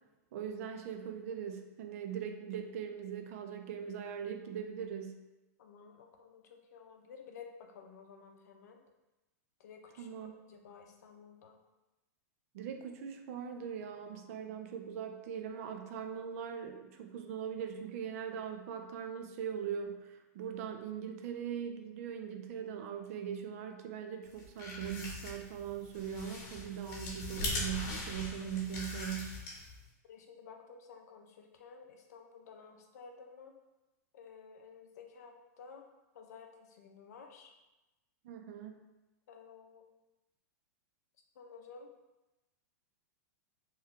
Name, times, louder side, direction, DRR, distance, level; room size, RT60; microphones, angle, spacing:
voice 1, 0.3-5.2 10.0-10.3 12.5-29.4 38.2-38.8, right 8 dB, 55° right, 5 dB, 0.3 m, -40 dB
voice 2, 5.6-8.8 9.6-11.6 30.0-33.5 34.1-35.8 36.1-37.5 39.3-39.8 41.4-41.9, left 6 dB, 75° left, 3 dB, 0.5 m, -53 dB
sound 1, 24.3-29.9, left 2 dB, 35° left, 1.0 m, -41 dB
3.0 x 2.2 x 3.5 m, 1.0 s
supercardioid pair, 150°, 9 cm